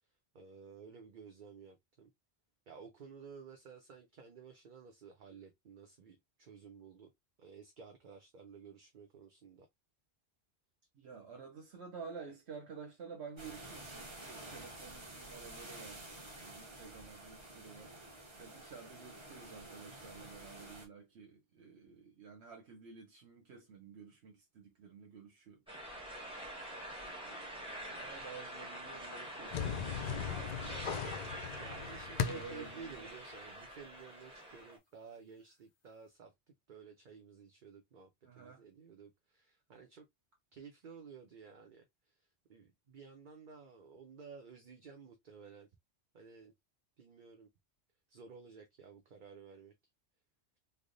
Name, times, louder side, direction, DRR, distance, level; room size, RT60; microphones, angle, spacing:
voice 1, 0.3-2.1 2.7-7.1 7.4-9.7 30.6-36.3 36.7-40.1 40.5-45.7 46.1-46.5 47.0-47.5 48.1-49.7, right 5 dB, 50° right, 0.7 m, -54 dB
voice 2, 10.9-26.3 27.0-30.7 31.8-33.1 38.2-38.6, right 5 dB, 75° right, 1.1 m, -52 dB
sound 1, 13.4-20.9, right 1 dB, 25° right, 1.1 m, -50 dB
sound 2, 25.7-34.8, right 1 dB, 5° right, 1.4 m, -46 dB
sound 3, 29.5-32.7, left 7 dB, 55° left, 0.5 m, -38 dB
3.4 x 2.0 x 3.8 m
omnidirectional pair, 1.1 m